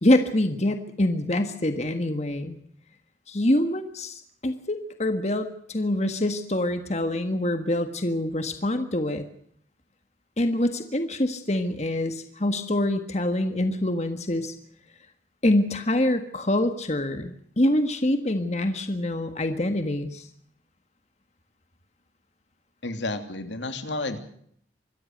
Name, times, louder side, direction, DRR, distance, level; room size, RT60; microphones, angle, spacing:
voice 1, 0.0-2.6 3.3-9.2 10.4-14.5 15.4-20.3, left 1 dB, 35° left, 7 dB, 1.6 m, -25 dB
voice 2, 22.8-24.2, left 2 dB, 85° left, 7 dB, 2.9 m, -31 dB
25.5 x 14.0 x 7.9 m, 0.65 s
head